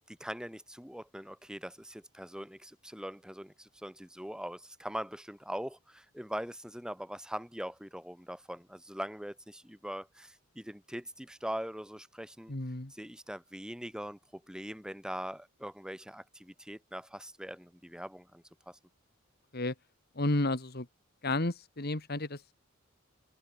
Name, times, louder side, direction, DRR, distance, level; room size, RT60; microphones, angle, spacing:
voice 1, 0.1-12.5 12.9-18.8, equal, 5° right, 4.7 m, -42 dB
voice 2, 12.5-12.9 19.5-19.7 20.2-20.9 21.2-22.5, left 2 dB, 45° left, 1.9 m, -32 dB
head